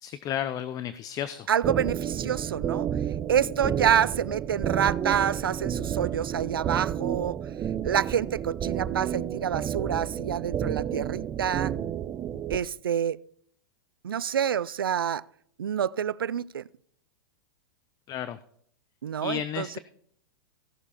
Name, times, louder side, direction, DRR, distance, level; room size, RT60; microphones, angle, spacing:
voice 1, 0.0-1.5 18.1-18.4 19.2-19.8, left 10 dB, 30° left, 0.6 m, -32 dB
voice 2, 1.5-2.9 3.3-7.4 7.8-11.7 12.5-13.2 14.0-15.2 15.6-16.6 19.0-19.8, right 9 dB, 90° right, 0.4 m, -27 dB
sound 1, 1.6-12.6, right 9 dB, 25° right, 0.6 m, -31 dB
16.5 x 6.9 x 4.3 m
hypercardioid pair, 110°, 12 cm